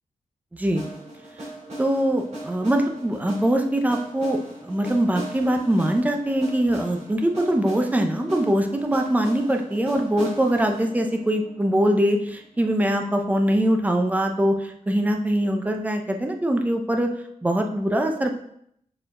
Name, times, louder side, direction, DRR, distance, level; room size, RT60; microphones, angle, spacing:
voice 1, 0.5-0.8 1.8-17.1 17.4-18.3, right 1 dB, 10° right, 4 dB, 0.6 m, -22 dB
sound 1, 0.8-12.7, right 1 dB, 60° right, 2.8 m, -39 dB
6.4 x 4.6 x 3.7 m, 0.72 s
wide cardioid pair, 165°, 13 cm